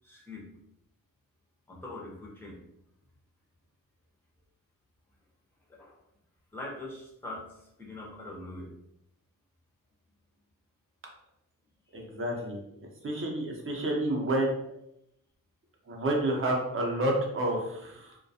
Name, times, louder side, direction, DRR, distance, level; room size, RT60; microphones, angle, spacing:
voice 1, 0.0-0.5 1.7-2.6 5.7-5.9 6.5-8.7, left 2 dB, 5° left, -1 dB, 0.5 m, -42 dB
voice 2, 11.9-12.6 13.0-14.5 15.9-18.2, right 1 dB, 40° right, 0 dB, 0.6 m, -29 dB
2.3 x 2.2 x 2.6 m, 0.81 s
wide cardioid pair, 135°, 33 cm